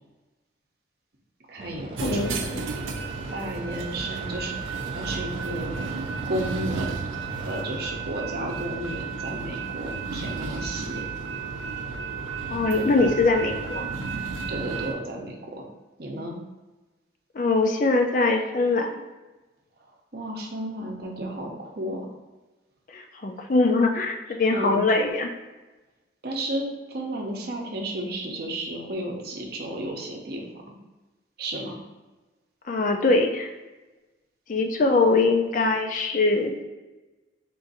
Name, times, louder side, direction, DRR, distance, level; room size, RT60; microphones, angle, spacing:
voice 1, 1.5-2.5 3.3-5.9 6.3-7.0 7.4-11.0 14.5-15.6 16.0-16.4 20.1-22.1 24.5-24.8 26.2-30.8 31.4-31.8, right 1 dB, 50° right, 1 dB, 0.7 m, -33 dB
sound 1, 1.6-8.1, right 2 dB, 30° right, 0.3 m, -42 dB
voice 2, 2.0-2.6 12.5-13.9 17.3-19.0 22.9-25.3 32.7-33.5 34.5-36.6, left 3 dB, 40° left, 4 dB, 0.4 m, -22 dB
sound 2, 2.0-14.9, right 5 dB, 90° right, 0.5 m, -33 dB
3.8 x 2.6 x 3.9 m, 1.2 s
head